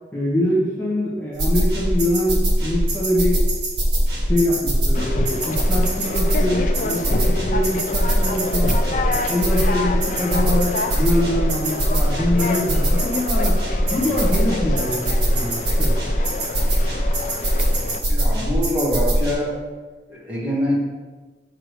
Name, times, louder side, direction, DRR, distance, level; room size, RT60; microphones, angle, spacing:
voice 1, 0.1-3.4 4.3-8.7 9.3-13.6 13.9-15.9, left 1 dB, 10° left, -8 dB, 1.3 m, -24 dB
sound 1, 1.4-19.3, right 1 dB, 75° right, 1.5 m, -21 dB
Conversation, 4.9-18.0, left 3 dB, 45° left, 0.4 m, -29 dB
voice 2, 18.1-19.5 20.1-20.8, equal, 10° right, -7 dB, 1.5 m, -24 dB
6.7 x 5.9 x 3.2 m, 1.3 s
head